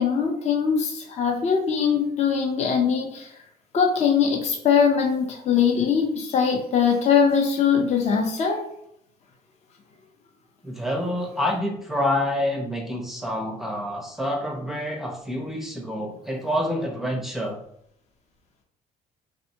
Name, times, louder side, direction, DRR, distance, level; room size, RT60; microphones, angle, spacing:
voice 1, 0.0-3.3 3.7-8.6, left 6 dB, 40° left, 2 dB, 0.6 m, -21 dB
voice 2, 10.6-17.6, left 1 dB, ahead, 0 dB, 0.5 m, -27 dB
3.4 x 2.1 x 2.7 m, 0.73 s
cardioid pair, 110°, 17 cm